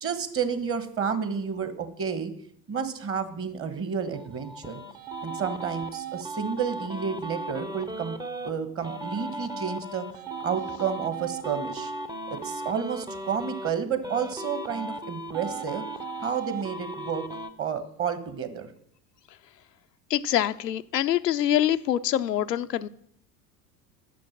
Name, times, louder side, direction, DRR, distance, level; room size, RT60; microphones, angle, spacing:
voice 1, 0.0-2.3 2.7-4.8 5.2-8.2 8.4-10.0 10.4-11.9 12.3-15.8 16.2-17.2 17.6-18.7, right 6 dB, 25° right, 10 dB, 1.3 m, -30 dB
sound 1, 4.1-8.5 8.8-13.7 14.0-17.5, right 2 dB, 10° right, 0.7 m, -36 dB
voice 2, 20.1-22.9, left 11 dB, 85° left, 11 dB, 0.6 m, -25 dB
9.2 x 6.8 x 7.4 m, 0.67 s
figure-of-eight pair, 75°, 47 cm